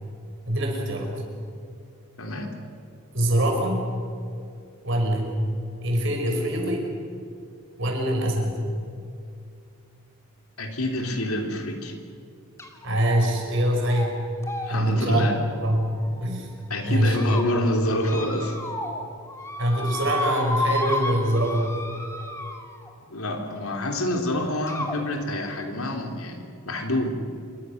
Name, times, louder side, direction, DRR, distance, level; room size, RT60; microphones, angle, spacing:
voice 1, 0.5-1.1 3.1-3.8 4.8-5.3 5.8-6.8 7.8-8.6 12.8-14.2 14.7-15.3 15.6-16.5 16.8-17.4 19.6-21.6, right 1 dB, 55° right, 1 dB, 5.8 m, -23 dB
voice 2, 2.2-2.5 10.6-12.0 14.6-15.4 16.7-18.6 23.1-27.2, left 1 dB, 75° left, 4 dB, 3.5 m, -27 dB
sound 1, 12.6-12.9 13.2-13.6 13.8-14.1 14.4-16.4 16.9-17.4 18.0-19.0 19.3-22.9 23.9-24.0 24.7-25.0, left 2 dB, 15° left, 2.4 m, -32 dB
27.5 x 24.5 x 6.6 m, 2.5 s
head